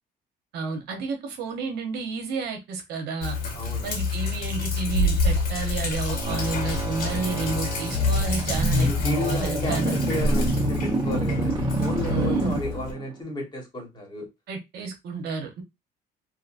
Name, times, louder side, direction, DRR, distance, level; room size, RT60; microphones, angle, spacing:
voice 1, 0.5-3.4 3.8-8.9 9.2-10.0 12.1-12.6 14.5-15.6, right 4 dB, 75° right, 1.0 m, -31 dB
Sink (filling or washing), 3.2-12.9, left 3 dB, 60° left, 1.3 m, -27 dB
voice 2, 3.5-3.9 8.7-14.3, left 1 dB, 25° left, 1.5 m, -33 dB
sound 1, 6.1-13.1, right 1 dB, 30° right, 1.0 m, -27 dB
2.9 x 2.6 x 2.6 m
cardioid pair, 110°, 17 cm